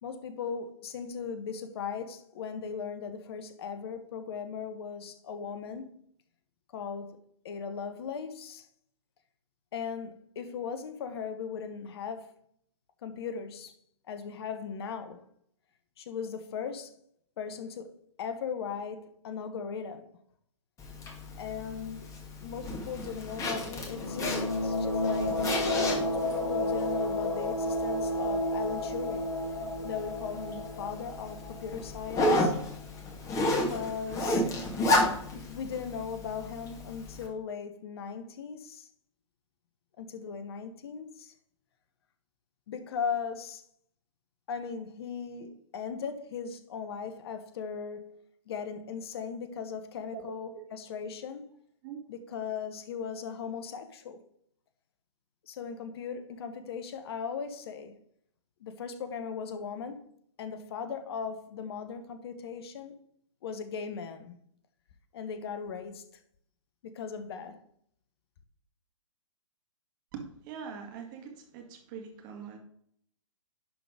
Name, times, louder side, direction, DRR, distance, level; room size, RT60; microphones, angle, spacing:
voice 1, 0.0-5.9 6.7-7.2 7.4-8.7 9.7-12.3 13.0-13.7 14.1-15.3 16.0-16.9 17.4-20.0 21.4-25.5 26.0-29.3 29.8-32.5 33.4-34.5 35.3-38.9 40.0-41.3 42.7-43.6 44.5-48.1 48.5-51.5 52.1-54.2 55.5-58.0 58.6-60.1 60.4-63.0 63.4-64.4 65.1-66.0 66.8-67.6, left 6 dB, 50° left, 1.0 m, -38 dB
Zipper (clothing), 20.8-37.3, left 1 dB, 20° left, 1.7 m, -33 dB
sound 1, 23.8-32.4, left 1 dB, 70° left, 1.6 m, -31 dB
voice 2, 50.0-50.6 51.8-52.0 70.1-72.6, right 7 dB, 40° right, 1.9 m, -43 dB
11.0 x 4.0 x 4.9 m
figure-of-eight pair, 120°, 17 cm